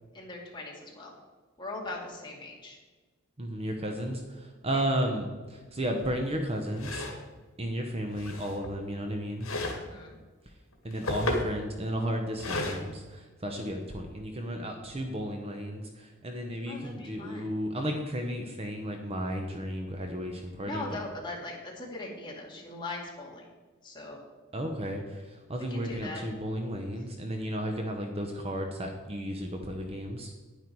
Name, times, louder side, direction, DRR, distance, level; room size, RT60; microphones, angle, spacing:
voice 1, 0.1-1.1 1.6-2.8 4.7-4.8 9.8-10.2 16.7-17.6 20.6-23.5 23.8-24.2 25.7-26.2, left 2 dB, 20° left, -2 dB, 2.3 m, -40 dB
voice 2, 3.4-7.0 7.6-9.6 10.8-21.1 24.5-30.3, equal, 30° right, 3 dB, 0.9 m, -33 dB
sound 1, 6.0-6.1 6.8-7.2 8.1-8.8 9.4-9.9 10.7-11.6 12.4-12.8, left 2 dB, 70° left, 1.9 m, -33 dB
10.0 x 9.4 x 4.7 m, 1.3 s
head